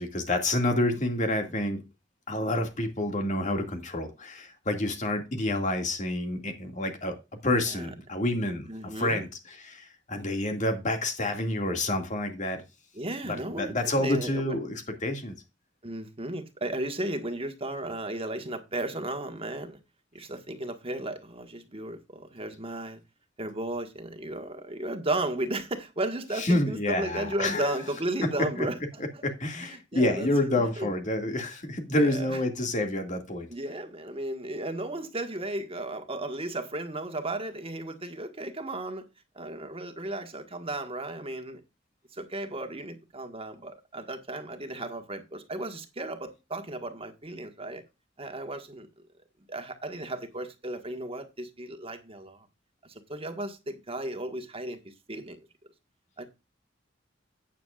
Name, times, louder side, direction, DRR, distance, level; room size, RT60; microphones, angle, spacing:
voice 1, 0.0-1.8 2.3-7.2 7.4-12.6 13.3-15.4 26.4-27.7 28.6-28.7 29.2-33.5, left 1 dB, 40° left, 2.2 m, -28 dB
voice 2, 8.7-9.2 12.9-14.6 15.8-19.8 20.1-23.0 23.4-29.2 29.6-30.9 32.0-32.4 33.5-39.0 39.3-41.6 42.1-47.8 48.2-48.9 49.5-52.5 52.9-55.4 56.2-56.3, right 1 dB, 30° right, 1.6 m, -35 dB
12.5 x 9.3 x 2.5 m
head